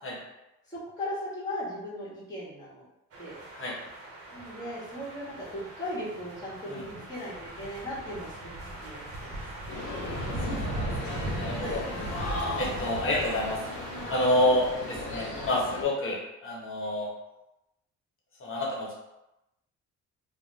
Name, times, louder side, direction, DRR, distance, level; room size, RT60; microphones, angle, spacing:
voice 1, 0.7-2.8 3.2-3.4 4.3-9.5 11.5-11.8, left 1 dB, 10° left, -8 dB, 1.2 m, -38 dB
sound 1, 3.1-15.5, right 1 dB, 50° right, 0.7 m, -39 dB
sound 2, 9.7-15.8, left 2 dB, 85° left, 0.8 m, -36 dB
voice 2, 10.1-11.8 12.6-13.6 14.1-17.1 18.4-18.9, left 1 dB, 45° left, -3 dB, 1.0 m, -29 dB
2.4 x 2.1 x 3.1 m, 0.91 s
cardioid pair, 90°, 30 cm